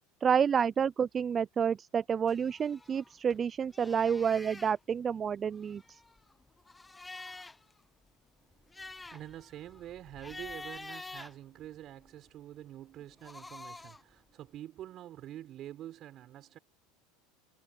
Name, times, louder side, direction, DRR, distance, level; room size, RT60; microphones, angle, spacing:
voice 1, 0.2-6.0, right 7 dB, 30° right, 0.5 m, -29 dB
sound 1, 2.3-3.4 3.7-4.8 5.5-7.7 8.1-8.2 8.5-12.1 13.0-14.1, left 3 dB, 10° left, 0.8 m, -48 dB
voice 2, 8.6-16.6, right 12 dB, 45° right, 5.6 m, -47 dB
hypercardioid pair, 90°, 0 cm